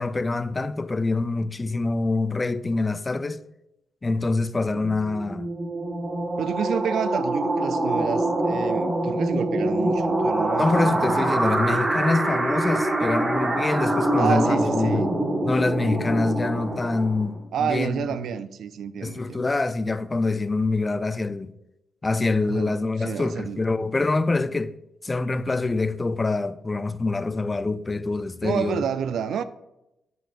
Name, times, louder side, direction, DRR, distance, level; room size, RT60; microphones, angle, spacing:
voice 1, 0.0-3.4 4.0-5.5 10.6-15.1 15.4-18.1 19.0-21.5 22.0-24.7 25.0-28.8, left 3 dB, 30° left, 0.4 m, -25 dB
sound 1, 5.0-17.4, right 1 dB, 35° right, 1.3 m, -25 dB
voice 2, 6.4-11.3 14.1-15.1 17.5-19.4 22.5-22.7 23.0-23.6 28.4-29.4, right 7 dB, 75° right, 0.3 m, -29 dB
12.0 x 4.6 x 2.4 m
supercardioid pair, 55°, 0 cm